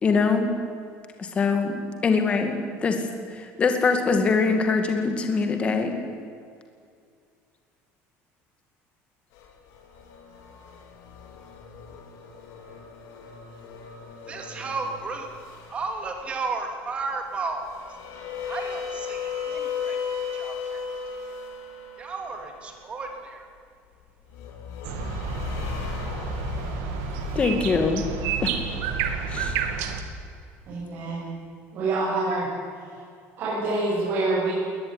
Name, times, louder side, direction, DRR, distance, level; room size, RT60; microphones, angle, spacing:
voice 1, 0.0-0.5 1.2-2.5 2.8-3.0 3.3-6.0 27.4-28.0 28.4-28.5 29.3-29.6, left 4 dB, 20° left, 5 dB, 2.3 m, -23 dB
sound 1, 9.3-16.4 17.3-23.1 24.3-28.3, left 6 dB, 75° left, 4.5 m, -36 dB
voice 2, 14.3-15.3 15.7-17.7 18.5-20.0 20.3-20.8 22.0-23.5, right 4 dB, 20° right, 4 dB, 3.3 m, -33 dB
sound 2, 24.8-30.0, right 6 dB, 85° right, 2.7 m, -30 dB
voice 3, 30.7-31.4 31.7-32.5 33.4-34.5, right 2 dB, 40° right, -7 dB, 7.9 m, -26 dB
21.5 x 20.0 x 9.9 m, 2.2 s
cardioid pair, 175°, 5 cm